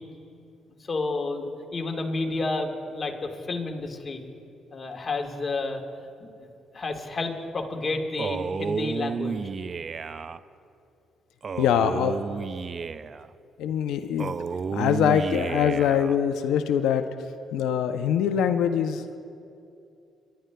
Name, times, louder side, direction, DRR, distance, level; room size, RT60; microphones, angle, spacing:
voice 1, 0.9-4.2 4.7-5.8 6.2-6.5 6.7-9.4, left 3 dB, 35° left, 2 dB, 1.4 m, -30 dB
Male speech man speaking, 8.2-10.4 11.4-13.3 14.2-16.2, right 5 dB, 45° right, 0.3 m, -31 dB
voice 2, 11.6-12.2 13.6-14.4 14.7-17.0 17.5-19.2, left 8 dB, 85° left, 9 dB, 0.4 m, -23 dB
29.5 x 11.5 x 2.2 m, 2.6 s
cardioid pair, 90°, 0 cm